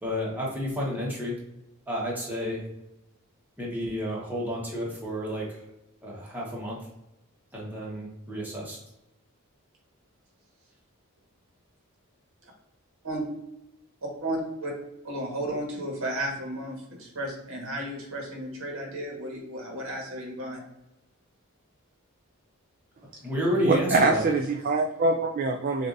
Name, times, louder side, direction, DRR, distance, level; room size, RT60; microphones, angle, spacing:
voice 1, 0.0-1.4 1.9-2.6 3.6-5.6 6.0-6.8 7.5-8.8 23.2-24.2, equal, 10° right, -5 dB, 1.2 m, -30 dB
voice 2, 14.0-14.7 15.0-20.6, right 1 dB, 65° right, 0 dB, 1.4 m, -33 dB
voice 3, 23.7-25.9, right 3 dB, 40° right, 3 dB, 0.3 m, -24 dB
6.6 x 2.7 x 2.6 m, 0.88 s
head